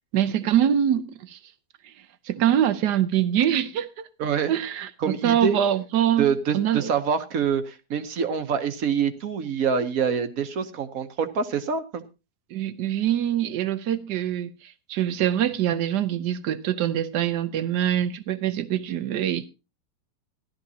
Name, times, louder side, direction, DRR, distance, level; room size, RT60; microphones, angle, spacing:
voice 1, 0.1-1.4 1.8-1.9 2.3-4.1 4.5-6.3 6.5-6.9 12.5-19.5, right 10 dB, 85° right, 1.4 m, -24 dB
voice 2, 4.2-4.5 5.0-5.6 6.2-12.0, right 6 dB, 60° right, 1.3 m, -25 dB
15.5 x 12.0 x 2.8 m
omnidirectional pair, 1.7 m